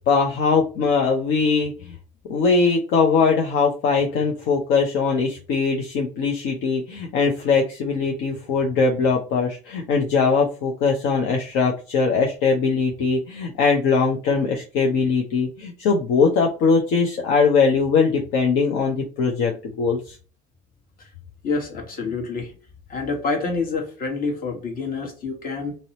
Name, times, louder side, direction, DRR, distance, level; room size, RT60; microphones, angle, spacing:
voice 1, 0.1-2.0 2.3-20.2, left 4 dB, 60° left, 0.6 m, -21 dB
voice 2, 21.4-22.5 22.9-25.8, left 4 dB, 45° left, 1.1 m, -27 dB
2.6 x 2.0 x 2.7 m
hypercardioid pair, 70°, 21 cm